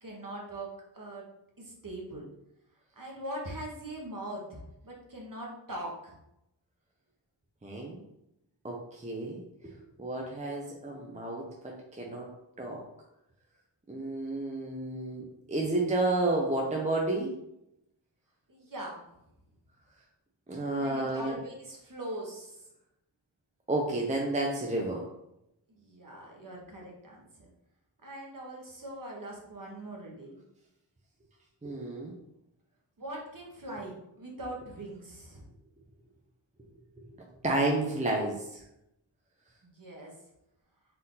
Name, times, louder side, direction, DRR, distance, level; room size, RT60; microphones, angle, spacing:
voice 1, 0.0-1.3 1.6-2.3 3.0-6.2 18.5-19.0 20.8-22.6 25.7-27.5 28.0-30.4 33.0-35.4 39.6-40.2, right 1 dB, 45° right, -2 dB, 1.4 m, -41 dB
voice 2, 7.6-8.0 8.6-12.3 12.6-12.8 13.9-17.3 20.5-21.4 23.7-25.1 31.6-32.1 37.0-37.1 37.4-38.6, right 2 dB, 15° right, -1 dB, 0.7 m, -31 dB
4.3 x 2.6 x 3.9 m, 0.84 s
cardioid pair, 55°, 47 cm